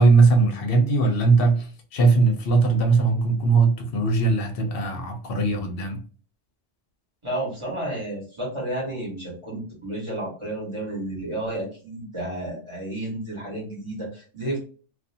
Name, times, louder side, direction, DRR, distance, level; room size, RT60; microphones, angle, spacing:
voice 1, 0.0-6.0, right 3 dB, 60° left, 0.8 m, -20 dB
voice 2, 7.2-14.6, right 1 dB, 25° right, 1.1 m, -31 dB
2.5 x 2.3 x 2.6 m
omnidirectional pair, 1.2 m